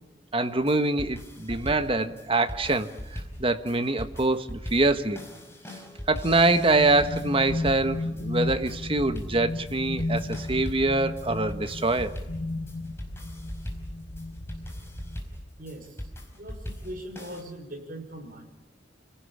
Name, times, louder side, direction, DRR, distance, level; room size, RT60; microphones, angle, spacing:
voice 1, 0.3-5.2 6.1-12.1, right 2 dB, 30° right, 8 dB, 1.4 m, -25 dB
sound 1, 0.6-17.4, equal, 15° left, 5.1 m, -40 dB
sound 2, 6.2-15.2, left 2 dB, 65° left, 2.1 m, -34 dB
voice 2, 15.6-15.9 16.4-18.4, right 1 dB, 50° right, 3 dB, 6.0 m, -40 dB
29.5 x 17.5 x 9.9 m, 1.0 s
head